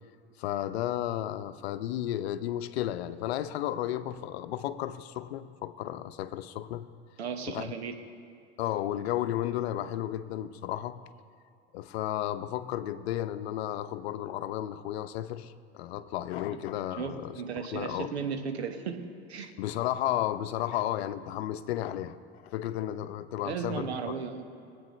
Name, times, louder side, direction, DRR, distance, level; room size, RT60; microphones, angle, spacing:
voice 1, 0.4-6.9 7.5-7.7 8.6-11.0 11.7-18.1 19.6-23.9, left 12 dB, 75° left, 12 dB, 0.7 m, -33 dB
voice 2, 7.2-8.0 16.5-16.6 17.0-19.5 23.4-24.4, right 6 dB, 90° right, 6 dB, 1.3 m, -35 dB
24.0 x 8.7 x 3.1 m, 2.4 s
hypercardioid pair, 75°, 32 cm